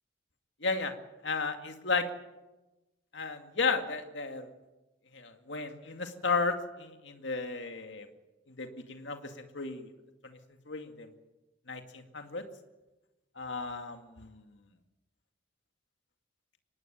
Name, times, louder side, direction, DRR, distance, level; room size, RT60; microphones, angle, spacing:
voice 1, 0.6-0.9 1.2-2.1 3.1-4.5 5.1-8.1 8.6-9.9 10.7-11.1 11.7-12.4 13.4-14.4, left 4 dB, 65° left, 6 dB, 2.2 m, -34 dB
24.5 x 19.0 x 9.2 m, 1.1 s
head